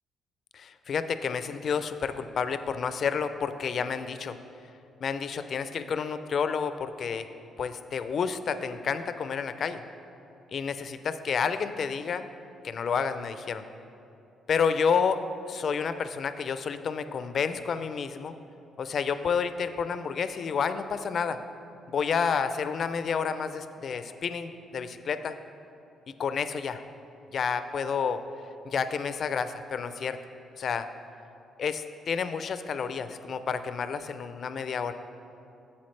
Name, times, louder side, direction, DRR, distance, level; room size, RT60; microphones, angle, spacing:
voice 1, 0.5-4.4 5.0-7.3 7.6-9.8 10.5-12.3 12.6-13.6 14.5-15.2 15.5-18.3 18.8-21.4 21.9-25.4 26.2-26.8 27.3-28.2 28.6-30.2 30.6-30.9 31.6-34.9, left 6 dB, 55° left, 11 dB, 0.3 m, -30 dB
8.4 x 7.2 x 3.2 m, 2.7 s
cardioid pair, 90°, 0 cm